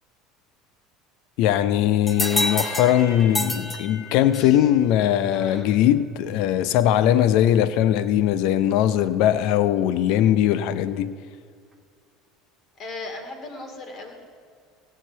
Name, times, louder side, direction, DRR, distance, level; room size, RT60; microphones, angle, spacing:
voice 1, 1.4-11.1, left 11 dB, 65° left, 0.5 m, -20 dB
sound 1, 2.0-4.3 9.8-9.9 11.7-11.8, right 3 dB, 20° right, 1.7 m, -37 dB
sound 2, 2.1-4.6, left 2 dB, 20° left, 1.5 m, -29 dB
voice 2, 4.3-4.7 5.3-5.7 12.8-14.2, left 2 dB, 45° left, 2.3 m, -38 dB
16.5 x 5.8 x 7.0 m
hypercardioid pair, 75°, 0 cm